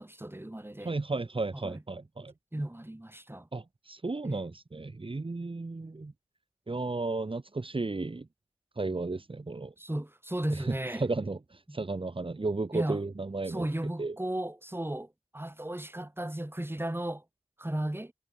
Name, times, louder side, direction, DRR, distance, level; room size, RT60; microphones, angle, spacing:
voice 1, 0.0-0.9 1.6-1.8 2.5-3.5 4.2-4.4 9.8-11.0 11.7-11.8 12.7-13.0 13.5-17.2 17.6-18.1, right 1 dB, 20° right, 4.2 m, -35 dB
voice 2, 0.8-2.3 3.5-6.1 6.7-8.3 8.7-9.7 10.5-13.7 14.0-14.2, right 3 dB, 50° right, 1.7 m, -34 dB
wide cardioid pair, 50°, 12 cm